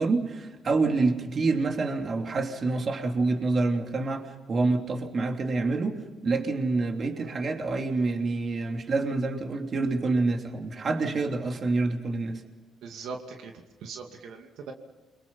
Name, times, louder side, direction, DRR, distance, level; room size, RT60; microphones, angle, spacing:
voice 1, 0.0-12.4, right 3 dB, 45° right, 3 dB, 3.1 m, -27 dB
voice 2, 12.8-13.5 13.8-14.7, right 5 dB, 80° right, 2 dB, 2.5 m, -40 dB
29.5 x 23.5 x 5.6 m, 1.2 s
cardioid pair, 90°, 0 cm